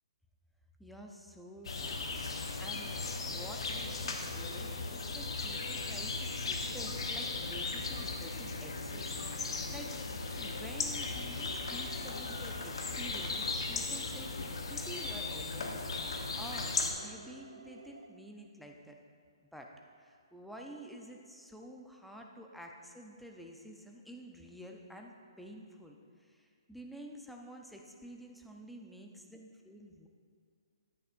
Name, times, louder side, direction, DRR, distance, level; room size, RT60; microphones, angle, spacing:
voice 1, 0.8-2.1 2.6-9.1 9.4-10.0 10.4-19.0 19.4-19.7 20.0-30.1, equal, ahead, 1 dB, 0.5 m, -50 dB
sound 1, 1.6-16.9, left 3 dB, 65° left, 1.0 m, -37 dB
sound 2, 3.2-18.1, right 4 dB, 85° right, 0.7 m, -53 dB
9.6 x 9.5 x 2.5 m, 2.2 s
hypercardioid pair, 155°, 3 cm